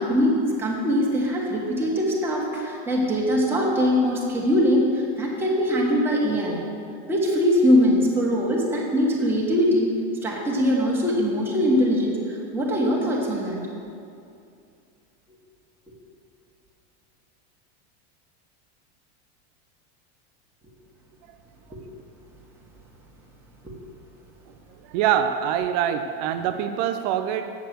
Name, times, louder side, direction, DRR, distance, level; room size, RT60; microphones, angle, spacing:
voice 1, 0.0-6.6 7.1-9.9 10.2-13.6 21.7-21.8 23.6-23.7, equal, 5° right, -4 dB, 1.5 m, -22 dB
voice 2, 24.9-27.5, right 9 dB, 40° right, 8 dB, 0.4 m, -24 dB
8.1 x 6.7 x 7.7 m, 2.5 s
supercardioid pair, 160°, 33 cm